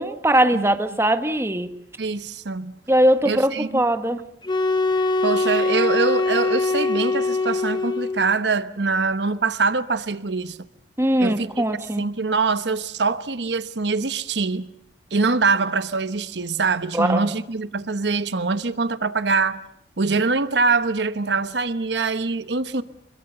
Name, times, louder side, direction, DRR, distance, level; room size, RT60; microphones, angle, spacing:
voice 1, 0.0-1.7 2.9-4.2 11.0-12.0 16.9-17.3, right 1 dB, 15° right, 1.3 m, -20 dB
voice 2, 2.0-2.7 3.2-3.8 5.2-10.6 11.2-14.7 15.1-19.6 20.0-22.8, right 4 dB, 75° right, 1.0 m, -24 dB
sound 1, 4.4-8.4, left 3 dB, 25° left, 1.2 m, -22 dB
26.5 x 22.0 x 6.9 m
head